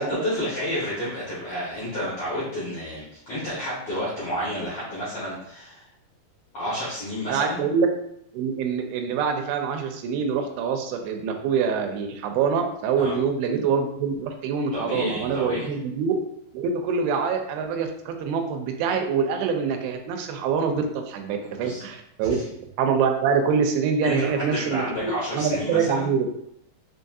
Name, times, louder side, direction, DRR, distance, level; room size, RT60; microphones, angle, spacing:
voice 1, 0.0-5.9 6.5-7.6 13.0-13.1 14.7-15.7 21.6-21.8 22.2-22.4 24.0-26.1, equal, 70° left, -9 dB, 1.4 m, -30 dB
voice 2, 7.3-7.9 8.3-16.1 16.5-22.4 22.8-26.3, right 6 dB, 90° right, 5 dB, 2.5 m, -25 dB
5.9 x 2.6 x 2.3 m, 0.74 s
omnidirectional pair, 4.3 m